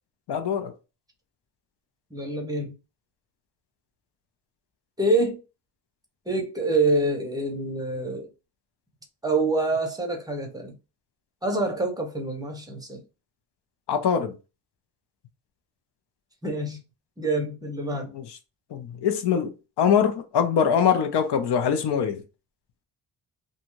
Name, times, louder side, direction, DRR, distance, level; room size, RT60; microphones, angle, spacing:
voice 1, 0.3-0.7 13.9-14.4 18.1-18.4 18.7-22.2, left 7 dB, 70° left, 0.7 m, -23 dB
voice 2, 2.1-2.7 5.0-5.4 6.3-8.3 9.2-10.7 11.4-13.0 16.4-16.8 17.2-18.1, right 2 dB, 10° right, 0.6 m, -26 dB
2.6 x 2.3 x 3.0 m
wide cardioid pair, 150°, 43 cm